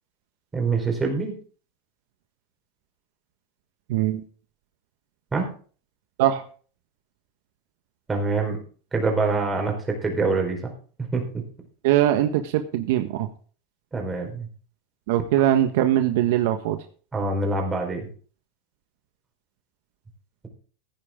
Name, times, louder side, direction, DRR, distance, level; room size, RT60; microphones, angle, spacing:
voice 1, 0.5-1.3 5.3-5.5 8.1-8.6 8.9-10.7 11.1-11.2 13.9-14.5 17.1-18.1, right 3 dB, 15° right, 2 dB, 4.7 m, -25 dB
voice 2, 3.9-4.2 6.2-6.4 11.8-13.3 15.1-16.8, right 12 dB, 65° right, 7 dB, 1.4 m, -21 dB
15.5 x 10.0 x 3.8 m, 0.42 s
supercardioid pair, 130°, 0 cm